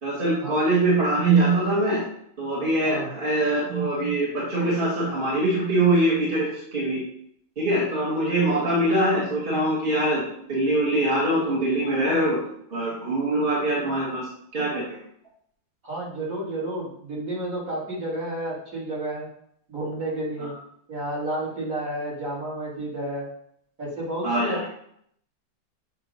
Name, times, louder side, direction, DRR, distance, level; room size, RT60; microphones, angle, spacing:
voice 1, 0.0-2.0 2.4-7.0 7.6-10.2 10.5-12.4 12.7-14.2 14.5-15.0 20.4-20.5 24.2-24.6, right 2 dB, 30° right, -6 dB, 1.6 m, -23 dB
voice 2, 2.8-3.1 15.8-19.3 19.7-20.5 20.9-23.3 23.8-24.7, right 1 dB, 45° right, -7 dB, 2.7 m, -31 dB
7.3 x 2.9 x 5.3 m, 0.70 s
omnidirectional pair, 2.0 m